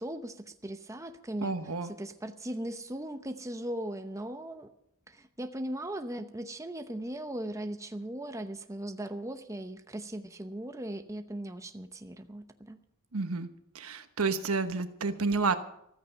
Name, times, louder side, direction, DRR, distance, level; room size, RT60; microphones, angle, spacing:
voice 1, 0.0-1.5 2.0-4.7 5.1-12.8, right 1 dB, 15° right, 7 dB, 0.8 m, -38 dB
voice 2, 1.4-1.9 13.1-13.5 13.7-15.6, right 4 dB, 80° right, 9 dB, 1.2 m, -30 dB
14.5 x 13.5 x 5.4 m, 0.76 s
head